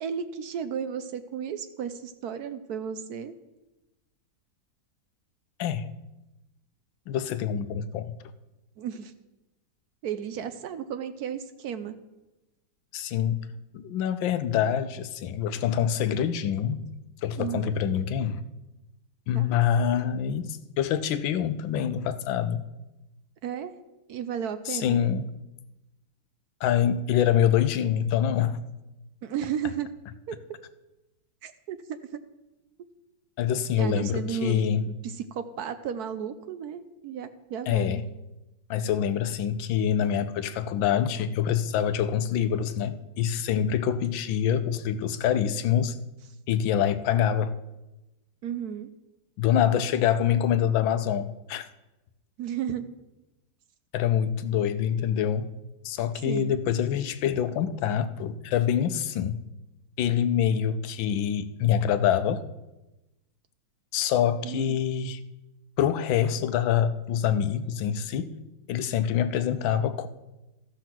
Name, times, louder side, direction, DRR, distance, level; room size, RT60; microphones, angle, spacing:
voice 1, 0.0-3.3 8.8-9.1 10.0-12.0 17.4-17.8 19.3-19.5 23.4-23.7 24.1-25.0 29.2-29.9 30.3-30.4 31.4-32.2 33.8-38.0 48.4-48.9 52.4-52.9 56.3-56.6 64.4-64.8, right 8 dB, 70° right, 0.9 m, -34 dB
voice 2, 5.6-5.9 7.1-8.1 12.9-13.5 13.7-16.9 17.2-18.4 19.3-22.7 24.7-25.3 26.6-28.6 33.4-34.8 37.7-38.0 38.7-46.0 46.5-47.6 49.4-51.7 53.9-55.5 55.8-59.4 60.0-62.5 63.9-65.2 65.8-68.4 68.7-70.1, left 9 dB, 80° left, 1.4 m, -25 dB
14.0 x 5.7 x 6.0 m
omnidirectional pair, 2.1 m